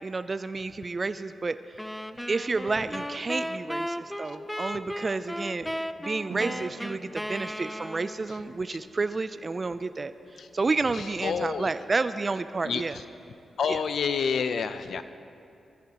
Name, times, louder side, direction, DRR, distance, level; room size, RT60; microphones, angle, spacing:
voice 1, 0.0-1.6 2.3-10.1 10.5-13.0 13.7-13.8, right 3 dB, 40° right, 12 dB, 0.4 m, -30 dB
sound 1, 1.8-8.4, equal, 5° left, 0.6 m, -35 dB
sound 2, 6.3-13.6, right 4 dB, 85° right, 1.1 m, -49 dB
voice 2, 10.9-11.7 12.6-13.0 13.6-15.0, left 6 dB, 70° left, 11 dB, 0.6 m, -29 dB
20.5 x 15.0 x 3.0 m, 2.6 s
supercardioid pair, 50°, 0 cm